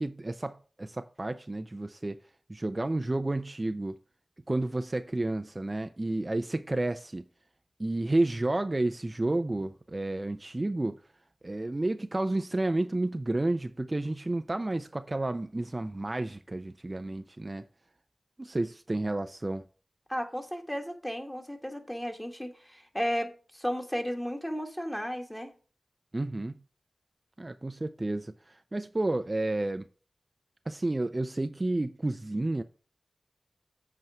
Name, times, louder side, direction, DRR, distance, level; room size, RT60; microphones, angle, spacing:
voice 1, 0.0-2.2 2.5-4.0 4.5-7.2 7.8-11.0 11.4-17.6 18.4-19.6 26.1-26.6 27.4-29.9 30.7-32.6, right 2 dB, 35° right, 0.5 m, -31 dB
voice 2, 20.1-25.5, equal, 10° left, 1.8 m, -34 dB
7.8 x 4.6 x 4.8 m
cardioid pair, 40°, 0 cm